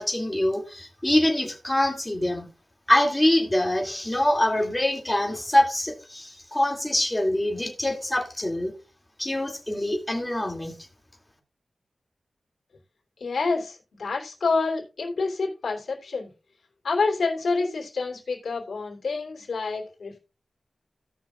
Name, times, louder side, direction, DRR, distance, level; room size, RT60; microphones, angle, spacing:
voice 1, 0.0-2.5 2.9-8.7 9.2-10.7, left 1 dB, 15° left, 2 dB, 2.5 m, -24 dB
voice 2, 13.2-16.3 16.8-20.2, left 4 dB, 85° left, 0 dB, 3.0 m, -28 dB
17.5 x 6.1 x 2.4 m, 0.32 s
wide cardioid pair, 80°, 0 cm